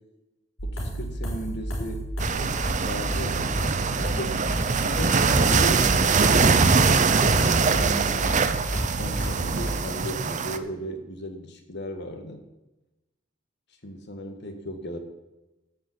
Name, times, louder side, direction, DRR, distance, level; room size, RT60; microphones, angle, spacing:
sound 1, 0.6-9.7, right 1 dB, 80° left, 4.5 m, -32 dB
voice 1, 0.6-2.1 2.3-4.5 4.8-12.4 13.8-15.0, equal, 60° left, 5 dB, 1.7 m, -36 dB
sound 2, 2.2-10.6, right 4 dB, 40° right, 0.6 m, -23 dB
14.5 x 5.4 x 7.4 m, 1.0 s
head